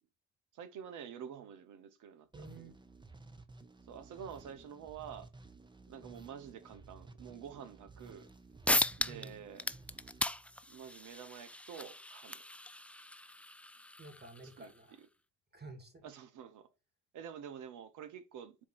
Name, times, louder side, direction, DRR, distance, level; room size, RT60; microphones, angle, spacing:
voice 1, 0.5-2.3 3.9-5.3 5.9-8.3 9.0-9.6 10.7-12.4 14.6-14.7 15.0-15.1 16.0-16.7 17.1-18.6, right 8 dB, 70° right, 0.9 m, -48 dB
sound 1, 2.3-11.2, right 3 dB, 15° right, 1.1 m, -55 dB
voice 2, 2.3-2.7 9.1-9.4 14.0-15.0 15.5-16.1, right 2 dB, 30° right, 2.4 m, -51 dB
sound 2, 8.3-8.4 8.7-9.3 9.6-14.7, left 1 dB, 5° left, 0.3 m, -37 dB
4.5 x 4.3 x 5.7 m
hypercardioid pair, 45°, 31 cm